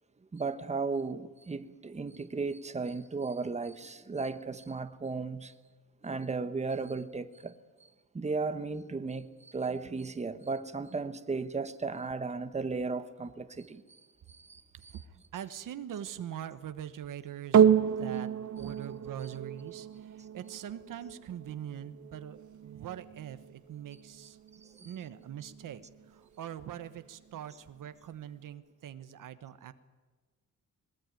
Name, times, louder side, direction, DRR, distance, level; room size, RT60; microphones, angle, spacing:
voice 1, 0.3-5.5 6.0-7.6 8.1-14.0 14.3-14.9 18.6-18.7 24.6-25.0, right 4 dB, 20° right, 1.1 m, -35 dB
voice 2, 14.7-18.3 18.6-24.4 24.8-29.7, right 10 dB, 85° right, 1.2 m, -43 dB
sound 1, 17.5-26.1 26.8-26.9, right 8 dB, 65° right, 1.1 m, -30 dB
22.0 x 19.5 x 9.2 m
wide cardioid pair, 155°, 31 cm